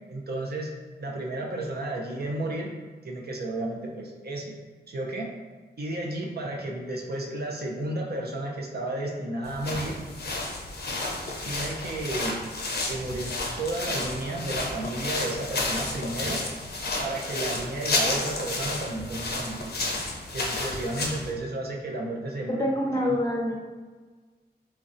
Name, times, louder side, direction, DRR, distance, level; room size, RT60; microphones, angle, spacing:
voice 1, 0.1-0.7 1.0-2.7 3.0-4.5 4.9-5.3 5.8-10.0 11.4-12.4 12.9-16.4 17.0-19.7 20.3-23.2, right 2 dB, 65° right, -1 dB, 0.5 m, -32 dB
sound 1, 9.4-21.3, left 2 dB, 65° left, 0.5 m, -31 dB
voice 2, 22.6-23.6, left 1 dB, 20° left, 0 dB, 0.5 m, -26 dB
3.1 x 2.5 x 2.6 m, 1.4 s
wide cardioid pair, 60°, 18 cm